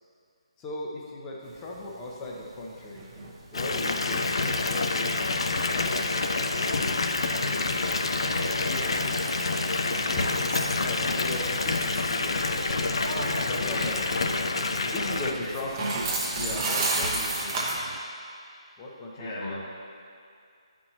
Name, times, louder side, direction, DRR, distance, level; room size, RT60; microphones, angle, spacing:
voice 1, 0.6-3.0 3.5-6.1 10.8-12.5 13.0-14.4 14.9-15.9 16.4-17.8 18.8-19.6, left 2 dB, 15° left, -3 dB, 0.8 m, -38 dB
sound 1, 1.4-17.8, right 2 dB, 25° right, 0.8 m, -35 dB
Water tap faucet / Bathtub (filling or washing) / Fill (with liquid), 3.5-15.3, left 3 dB, 60° left, 0.4 m, -27 dB
sound 2, 4.4-18.0, right 4 dB, 50° right, 0.4 m, -43 dB
voice 2, 8.4-9.0 10.9-11.4 13.7-13.8 15.1-15.4 19.2-19.6, left 2 dB, 35° left, -8 dB, 1.3 m, -39 dB
9.5 x 4.4 x 2.9 m, 2.3 s
figure-of-eight pair, 145°, 3 cm